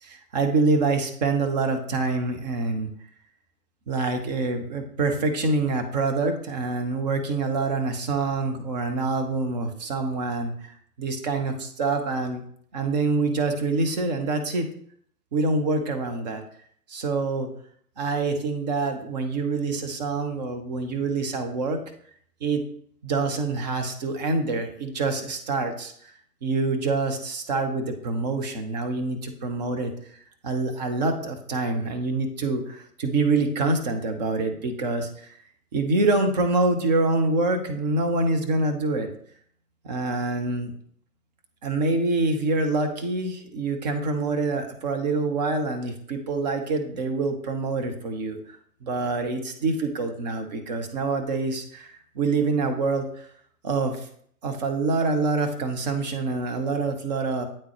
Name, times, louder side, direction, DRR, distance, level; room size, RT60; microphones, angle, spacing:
voice 1, 0.0-2.9 3.9-12.4 12.7-14.7 15.3-16.4 16.9-17.5 18.0-21.8 22.4-22.6 23.0-25.9 26.4-35.3 35.7-39.1 39.8-40.7 41.6-53.3 53.6-54.1 54.4-57.5, right 3 dB, 25° right, 5 dB, 0.7 m, -26 dB
8.6 x 3.7 x 3.0 m, 0.63 s
hypercardioid pair, 135°, 47 cm